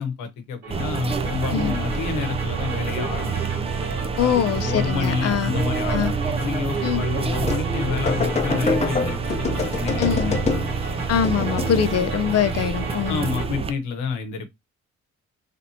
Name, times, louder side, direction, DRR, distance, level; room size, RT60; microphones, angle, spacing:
voice 1, 0.0-3.4 4.1-4.3 4.6-10.4 13.1-14.5, left 6 dB, 85° left, 0.9 m, -29 dB
sound 1, 0.6-13.5, right 4 dB, 85° right, 1.4 m, -36 dB
sound 2, 0.7-13.7, right 5 dB, 20° right, 0.4 m, -27 dB
voice 2, 4.2-5.5 5.9-6.1 6.8-7.0 10.0-10.3 11.1-13.3, left 9 dB, 55° left, 0.5 m, -23 dB
sound 3, 7.4-7.7 8.1-10.8 11.2-12.0, left 4 dB, 25° left, 0.8 m, -26 dB
3.3 x 2.7 x 2.7 m
cardioid pair, 90°, 30 cm